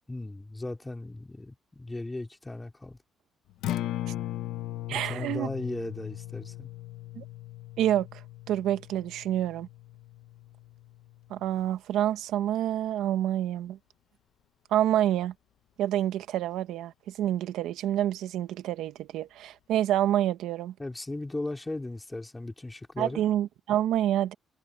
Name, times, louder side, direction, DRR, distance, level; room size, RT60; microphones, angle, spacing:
voice 1, 0.1-3.0 4.9-6.7 20.8-23.2, left 2 dB, 15° left, 2.9 m, -37 dB
Acoustic guitar, 3.5-11.7, left 14 dB, 85° left, 1.2 m, -38 dB
voice 2, 4.9-5.5 7.1-7.2 7.8-8.2 8.5-9.7 11.3-13.8 14.7-15.3 15.8-20.7 23.0-24.3, right 12 dB, 85° right, 1.5 m, -27 dB
cardioid pair, 90°, 0 cm